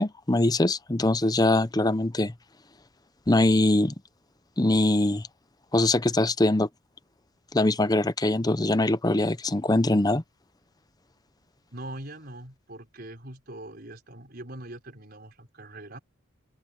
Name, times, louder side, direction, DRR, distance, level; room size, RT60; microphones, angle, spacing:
voice 1, 0.0-2.3 3.3-3.9 4.6-5.3 5.7-6.7 7.5-10.2, left 2 dB, 20° left, 0.7 m, -22 dB
voice 2, 11.7-16.0, right 1 dB, 50° right, 5.1 m, -42 dB
open air
head